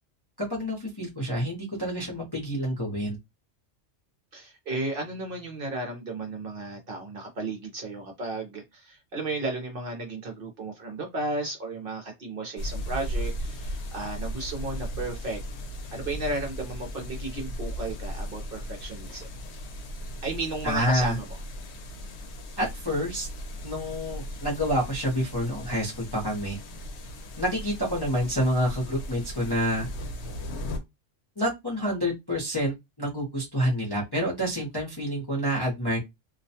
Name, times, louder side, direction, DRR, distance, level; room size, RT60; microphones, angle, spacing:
voice 1, 0.4-3.2 20.6-21.2 22.6-23.3 23.6-26.6 27.4-29.9 31.4-36.0, equal, 25° left, 0.6 m, -28 dB
voice 2, 4.3-15.4 15.9-19.3 20.2-21.3, right 2 dB, 55° right, 0.8 m, -34 dB
sound 1, 12.6-30.8, equal, 65° left, 0.8 m, -37 dB
2.4 x 2.2 x 2.7 m
omnidirectional pair, 1.3 m